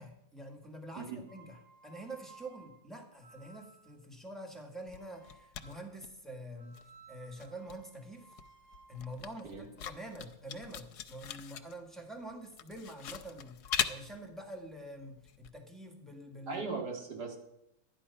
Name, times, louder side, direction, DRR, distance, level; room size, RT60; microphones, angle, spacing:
voice 1, 0.0-1.6 1.8-6.8 7.1-8.3 8.9-16.7, right 1 dB, ahead, 2 dB, 1.6 m, -46 dB
sound 1, 1.3-4.1 4.9-6.0 6.6-10.6, right 4 dB, 45° right, 2.4 m, -60 dB
sound 2, 4.8-6.5 6.7-15.5, left 9 dB, 80° left, 1.3 m, -40 dB
voice 2, 16.5-17.4, right 4 dB, 80° right, 2 dB, 2.6 m, -38 dB
12.0 x 9.9 x 5.6 m, 0.82 s
omnidirectional pair, 1.7 m